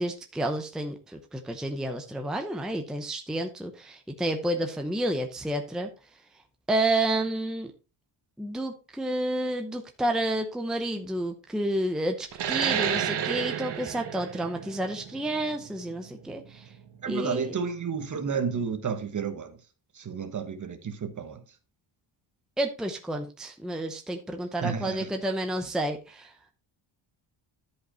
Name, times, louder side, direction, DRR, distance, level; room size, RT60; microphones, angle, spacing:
voice 1, 0.0-5.9 6.7-7.7 8.4-16.7 17.1-17.6 22.6-26.3, right 1 dB, ahead, 0.7 m, -30 dB
sound 1, 12.3-17.5, right 9 dB, 55° right, 1.2 m, -31 dB
voice 2, 17.0-19.6 20.0-21.4 24.6-25.1, right 6 dB, 40° right, 1.2 m, -31 dB
11.0 x 5.2 x 4.3 m
wide cardioid pair, 160°, 48 cm